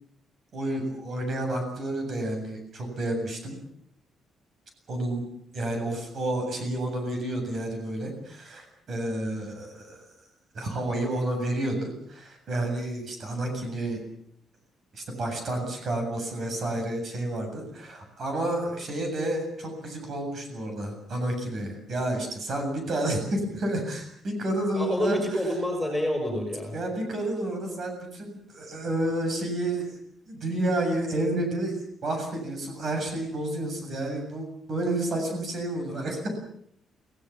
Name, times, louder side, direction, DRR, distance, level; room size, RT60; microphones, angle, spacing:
voice 1, 0.5-3.6 4.9-5.3 5.5-10.2 10.5-14.0 14.9-25.2 26.7-29.9 30.3-36.3, right 1 dB, 40° right, 4 dB, 7.6 m, -30 dB
voice 2, 24.7-26.7, equal, ahead, 2 dB, 6.5 m, -27 dB
29.0 x 18.0 x 7.4 m, 0.67 s
cardioid pair, 180°, 0 cm